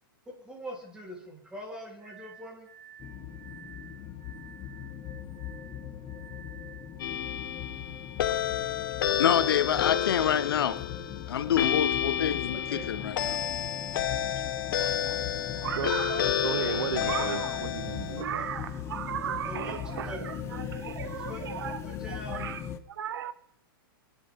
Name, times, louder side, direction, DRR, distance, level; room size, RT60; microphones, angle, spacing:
voice 1, 0.3-2.7 12.5-12.9 18.4-18.5 19.2-20.2 21.2-21.4 21.8-22.5, equal, 5° right, 3.7 m, -43 dB
Glass, 2.0-7.0, right 9 dB, 40° right, 6.7 m, -52 dB
sound 1, 3.0-22.8, left 9 dB, 20° left, 0.9 m, -40 dB
sound 2, 7.0-18.2, left 10 dB, 65° left, 1.3 m, -30 dB
voice 2, 9.2-10.8 11.3-13.4, left 9 dB, 80° left, 1.1 m, -27 dB
voice 3, 15.6-23.3, right 9 dB, 75° right, 1.0 m, -35 dB
28.0 x 11.0 x 3.7 m
hypercardioid pair, 155°, 12 cm